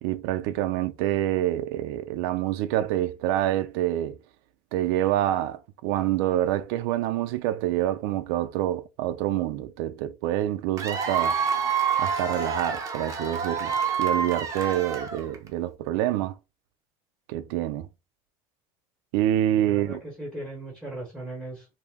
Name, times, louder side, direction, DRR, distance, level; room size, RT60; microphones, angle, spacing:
voice 1, 0.0-4.2 4.7-11.4 12.0-16.4 17.3-17.9 19.1-20.0, right 13 dB, 80° right, 0.4 m, -27 dB
Cheering / Applause / Crowd, 10.8-15.5, right 6 dB, 30° right, 0.6 m, -27 dB
voice 2, 19.5-21.7, right 1 dB, ahead, 1.0 m, -38 dB
2.6 x 2.0 x 3.4 m
cardioid pair, 155°, 12 cm